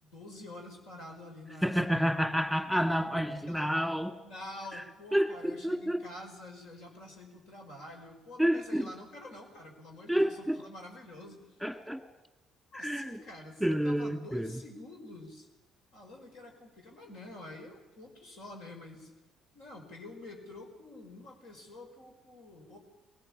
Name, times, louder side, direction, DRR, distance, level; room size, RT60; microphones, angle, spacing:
voice 1, 0.0-2.0 3.5-3.9 4.2-11.6 12.7-15.5 15.9-19.1 19.5-22.8, left 1 dB, 75° left, 2 dB, 5.1 m, -47 dB
voice 2, 1.6-4.1 5.1-6.0 8.4-8.9 10.1-10.6 11.6-12.0 12.7-13.2 13.6-14.5, equal, 5° left, 6 dB, 1.8 m, -29 dB
20.5 x 17.5 x 8.6 m, 1.0 s
supercardioid pair, 60°, 0 cm